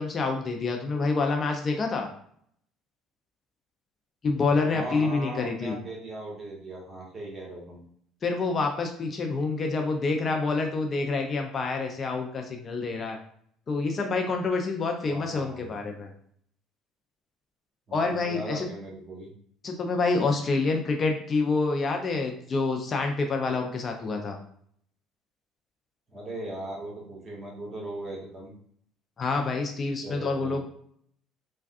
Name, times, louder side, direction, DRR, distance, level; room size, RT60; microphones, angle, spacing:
voice 1, 0.0-2.1 4.2-5.8 8.2-13.2 13.7-16.1 17.9-18.7 19.6-24.4 29.2-30.7, left 3 dB, 40° left, 3 dB, 0.5 m, -27 dB
voice 2, 4.7-7.8 15.1-15.7 17.9-19.3 26.1-28.5 30.0-30.6, right 1 dB, 30° right, -3 dB, 1.4 m, -38 dB
3.4 x 2.2 x 2.4 m, 0.63 s
hypercardioid pair, 65°, 0 cm